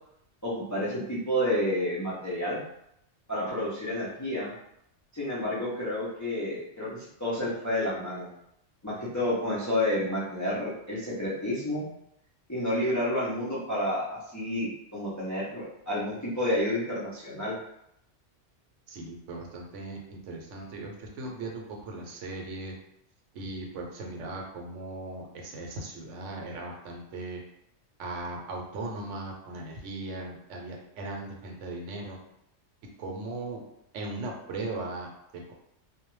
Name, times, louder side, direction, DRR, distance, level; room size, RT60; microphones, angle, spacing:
voice 1, 0.4-2.6 3.3-4.5 5.1-8.3 8.8-11.9 12.5-17.5, left 1 dB, 25° left, -8 dB, 0.4 m, -30 dB
voice 2, 18.9-22.7 23.3-27.4 28.0-32.2 33.0-33.6 33.9-35.1, right 2 dB, 80° right, 1 dB, 0.9 m, -38 dB
2.3 x 2.1 x 3.0 m, 0.78 s
omnidirectional pair, 1.3 m